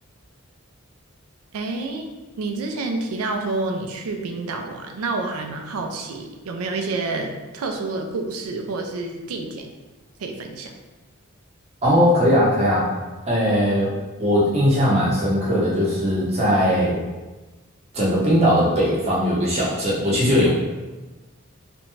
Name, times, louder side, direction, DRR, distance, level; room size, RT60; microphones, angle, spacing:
voice 1, 1.5-2.1 2.4-9.7 10.2-10.7, right 3 dB, 90° right, 3 dB, 0.4 m, -28 dB
voice 2, 11.8-12.9 13.2-17.0 17.9-20.5, equal, 30° right, -7 dB, 0.7 m, -19 dB
2.5 x 2.1 x 3.0 m, 1.2 s
head